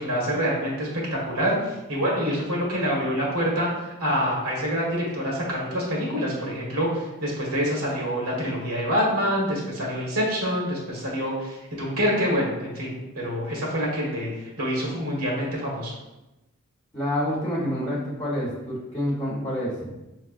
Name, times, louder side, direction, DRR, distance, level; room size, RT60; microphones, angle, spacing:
voice 1, 0.0-15.9, equal, 85° right, -3 dB, 1.5 m, -26 dB
voice 2, 16.9-19.9, equal, 20° left, -6 dB, 1.0 m, -28 dB
5.9 x 3.2 x 2.5 m, 1.0 s
head